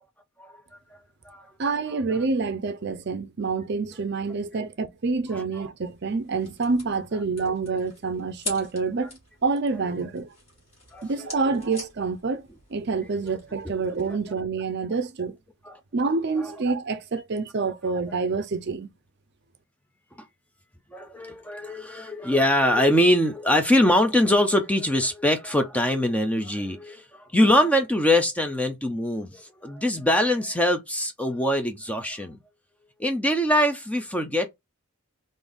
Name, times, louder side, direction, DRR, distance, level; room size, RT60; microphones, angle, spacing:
voice 1, 1.6-9.1 9.4-10.3 11.0-12.4 12.7-15.4 15.9-18.9, right 4 dB, 50° right, 0.5 m, -27 dB
sound 1, 5.8-14.3, left 2 dB, 30° left, 2.2 m, -44 dB
voice 2, 20.9-32.4 33.0-34.5, left 1 dB, 5° left, 0.5 m, -23 dB
3.8 x 2.6 x 3.4 m
head